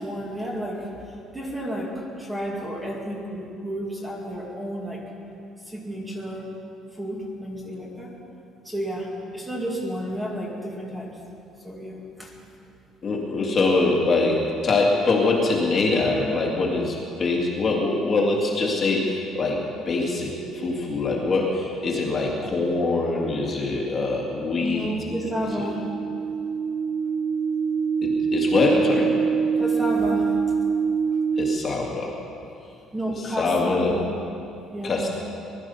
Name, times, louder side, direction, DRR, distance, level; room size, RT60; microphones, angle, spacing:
voice 1, 0.0-5.0 5.7-6.5 6.9-8.1 8.6-11.2 11.6-12.3 24.6-25.8 29.5-30.4 32.9-34.1 34.7-35.1, right 1 dB, 10° right, -3 dB, 2.3 m, -31 dB
voice 2, 13.0-24.9 25.5-25.7 28.0-29.1 31.4-32.1 33.2-34.0 34.8-35.1, left 3 dB, 30° left, -2 dB, 2.2 m, -23 dB
sound 1, 20.0-22.6 24.9-31.6, right 6 dB, 75° right, 0.7 m, -26 dB
20.5 x 12.5 x 5.6 m, 2.7 s
cardioid pair, 165°, 0 cm